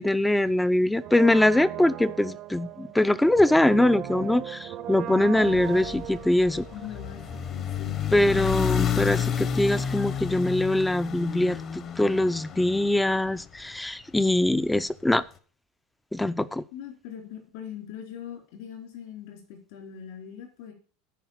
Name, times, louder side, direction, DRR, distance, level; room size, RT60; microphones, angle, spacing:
voice 1, 0.0-6.7 8.1-15.2 16.1-16.6, left 1 dB, 5° left, 0.4 m, -23 dB
Brass instrument, 1.0-7.8 8.1-8.2, right 11 dB, 40° right, 0.6 m, -38 dB
sound 1, 5.4-13.8, left 8 dB, 35° left, 0.9 m, -31 dB
voice 2, 6.7-7.2 7.5-8.0 16.7-20.7, left 9 dB, 70° left, 4.2 m, -41 dB
10.0 x 4.9 x 7.3 m
supercardioid pair, 145°, 0 cm